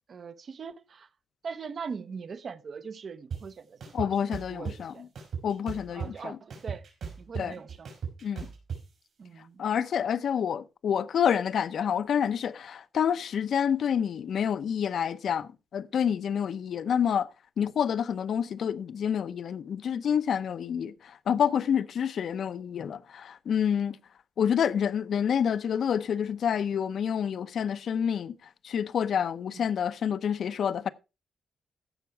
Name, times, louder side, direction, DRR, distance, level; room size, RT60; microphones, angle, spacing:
voice 1, 0.1-1.1 1.4-5.1 5.9-6.9 7.2-8.0 9.2-9.6 29.5-29.7, right 5 dB, 45° right, 0.7 m, -41 dB
sound 1, 3.3-3.4 3.8-4.8 5.2-6.2 6.5-8.8, right 6 dB, 65° right, 4.4 m, -36 dB
voice 2, 3.9-4.9 5.4-6.4 7.4-7.5 8.2-8.5 9.6-17.3 17.6-20.9 21.3-24.0 24.4-28.3 28.6-30.9, left 8 dB, 65° left, 0.6 m, -28 dB
15.0 x 5.8 x 4.6 m
wide cardioid pair, 150°, 0 cm